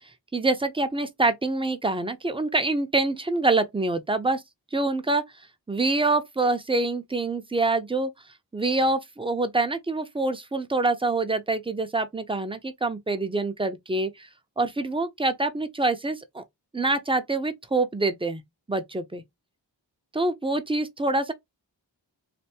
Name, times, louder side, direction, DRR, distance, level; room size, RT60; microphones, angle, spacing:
voice 1, 0.3-4.4 4.7-5.2 5.7-8.1 8.5-14.3 14.6-16.4 16.7-18.4 18.7-19.2 20.1-21.3, right 2 dB, 10° right, 0.6 m, -25 dB
3.4 x 2.5 x 2.8 m
wide cardioid pair, 40°, 44 cm